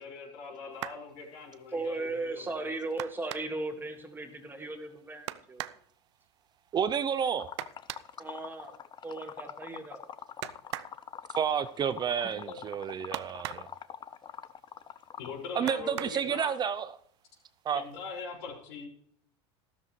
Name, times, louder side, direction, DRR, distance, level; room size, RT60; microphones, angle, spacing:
voice 1, 0.0-2.7 12.4-12.6 15.2-16.5 17.7-18.9, left 5 dB, 70° left, 5.5 m, -42 dB
sound 1, 0.7-1.1 3.0-3.7 5.3-5.9 7.6-8.1 10.4-11.0 13.1-13.8 15.7-16.3 17.4-17.5 17.9-18.1, right 14 dB, 85° right, 0.6 m, -39 dB
voice 2, 1.7-5.7 8.2-8.7 9.0-10.0, right 2 dB, 15° right, 2.0 m, -37 dB
voice 3, 6.7-7.5 11.3-13.7 15.5-17.0 17.6-17.8, right 7 dB, 30° right, 0.6 m, -30 dB
Liquid, 7.4-15.4, left 9 dB, 30° left, 0.7 m, -44 dB
13.5 x 13.0 x 3.2 m
supercardioid pair, 110°, 14 cm